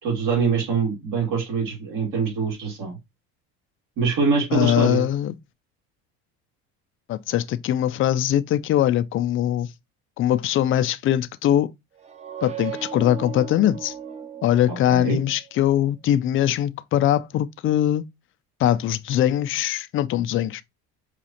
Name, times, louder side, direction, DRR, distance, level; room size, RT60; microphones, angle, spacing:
voice 1, 0.0-3.0 4.0-5.1 14.7-15.2, right 5 dB, 70° right, 2.3 m, -24 dB
voice 2, 4.5-5.3 7.1-9.7 10.2-11.7 12.4-13.9 14.4-18.0 18.6-20.6, left 11 dB, 40° left, 0.4 m, -22 dB
sound 1, 12.0-15.6, right 9 dB, 20° right, 0.7 m, -37 dB
5.0 x 2.4 x 2.8 m
cardioid pair, 105°, 33 cm